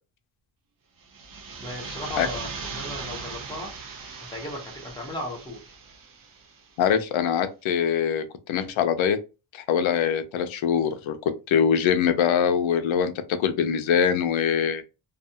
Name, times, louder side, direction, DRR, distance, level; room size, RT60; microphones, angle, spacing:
sound 1, 1.0-6.7, right 4 dB, 45° right, 0.7 m, -39 dB
voice 1, 1.6-3.7 4.3-5.7, left 1 dB, 10° left, 0.9 m, -36 dB
voice 2, 6.8-9.2 9.5-11.2 11.5-14.8, left 8 dB, 80° left, 0.6 m, -23 dB
2.4 x 2.3 x 2.7 m
wide cardioid pair, 145°, 47 cm